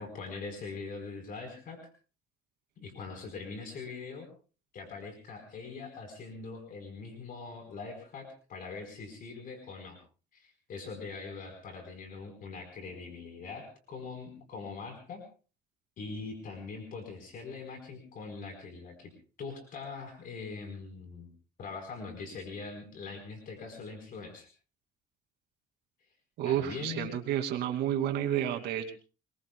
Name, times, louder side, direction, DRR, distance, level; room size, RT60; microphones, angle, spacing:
voice 1, 0.0-1.8 2.8-4.3 4.7-10.0 10.3-15.2 16.0-19.1 19.4-21.3 21.6-24.5 26.4-27.2, left 4 dB, 55° left, 4 dB, 4.5 m, -42 dB
voice 2, 26.4-28.9, right 11 dB, 80° right, 6 dB, 2.6 m, -30 dB
27.0 x 21.5 x 2.3 m, 0.37 s
cardioid pair, 110°, 17 cm